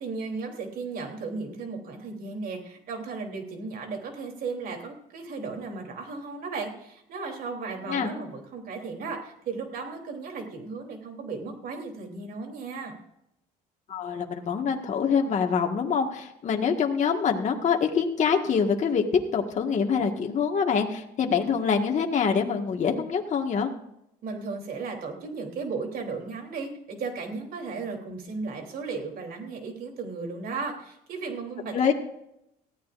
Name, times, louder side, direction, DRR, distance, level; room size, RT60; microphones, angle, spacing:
voice 1, 0.0-13.0 24.2-31.9, right 4 dB, 60° right, 3 dB, 3.3 m, -35 dB
voice 2, 13.9-19.0 19.3-23.7 31.7-31.9, left 6 dB, 45° left, 2 dB, 1.7 m, -25 dB
19.5 x 15.0 x 2.6 m, 0.80 s
cardioid pair, 110°, 17 cm